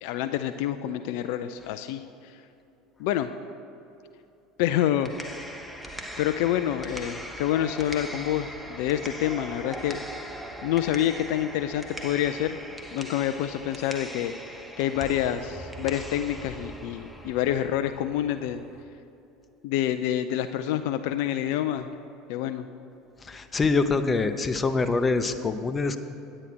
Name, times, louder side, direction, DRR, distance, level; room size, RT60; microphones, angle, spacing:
voice 1, 0.0-2.4 3.0-3.3 4.6-5.1 6.2-10.0 10.6-12.6 12.9-18.6 19.6-21.9 22.3-22.7, left 11 dB, 65° left, 9 dB, 0.3 m, -27 dB
sound 1, 4.8-18.8, equal, 5° right, 1.0 m, -40 dB
voice 2, 23.2-26.0, left 3 dB, 25° left, 9 dB, 0.7 m, -25 dB
9.8 x 8.8 x 4.6 m, 2.9 s
hypercardioid pair, 70°, 0 cm